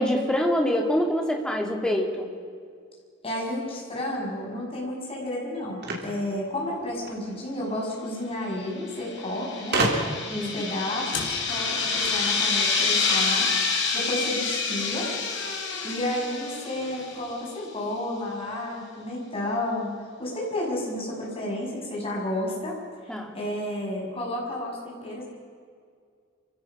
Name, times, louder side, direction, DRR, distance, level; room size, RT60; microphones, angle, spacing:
voice 1, 0.0-2.3 10.3-10.5 23.1-23.3, equal, 5° left, 1 dB, 2.7 m, -25 dB
voice 2, 3.2-9.8 10.3-13.5 13.9-15.1 15.8-19.9 20.2-22.7 23.0-25.2, left 1 dB, 30° left, -2 dB, 6.7 m, -31 dB
sound 1, 5.8-7.2 8.3-8.4 8.7-8.8 9.7-10.4, right 2 dB, 55° right, 3.6 m, -27 dB
sound 2, 8.9-17.2, left 4 dB, 65° left, 4.5 m, -28 dB
sound 3, 11.1-17.2, left 5 dB, 85° left, 3.5 m, -34 dB
27.0 x 16.5 x 6.1 m, 2.1 s
head